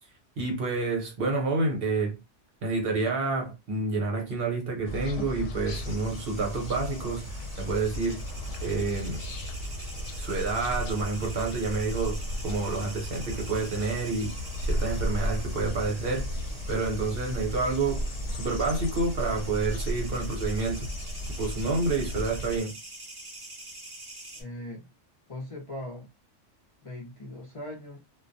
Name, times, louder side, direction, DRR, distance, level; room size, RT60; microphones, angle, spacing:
voice 1, 0.4-2.2 2.6-8.2 8.6-9.2 10.2-14.3 14.6-16.3 16.7-18.0 18.3-20.9 21.4-22.7, right 3 dB, 55° right, 1.0 m, -29 dB
sound 1, 4.8-22.6, equal, 75° left, 0.8 m, -34 dB
sound 2, 5.7-24.4, right 2 dB, 30° right, 0.4 m, -45 dB
voice 2, 24.3-24.9 25.3-26.1 26.8-28.0, left 1 dB, 40° left, 0.5 m, -39 dB
2.2 x 2.1 x 2.5 m
omnidirectional pair, 1.2 m